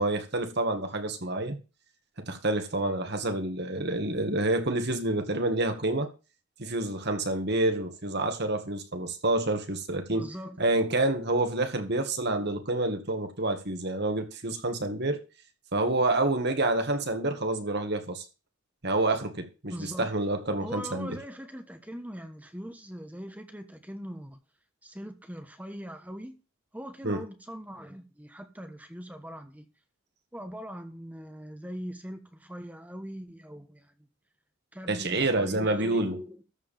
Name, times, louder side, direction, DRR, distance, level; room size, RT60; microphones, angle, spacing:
voice 1, 0.0-1.6 2.3-6.1 6.6-10.3 10.6-15.2 15.7-18.2 18.8-21.2 27.0-27.2 34.9-36.2, right 2 dB, 50° right, 2.1 m, -28 dB
voice 2, 10.1-10.6 19.7-20.1 20.6-24.4 24.8-26.4 26.7-29.6 30.3-33.9 34.7-36.4, equal, 5° right, 1.3 m, -41 dB
14.0 x 4.9 x 7.5 m
head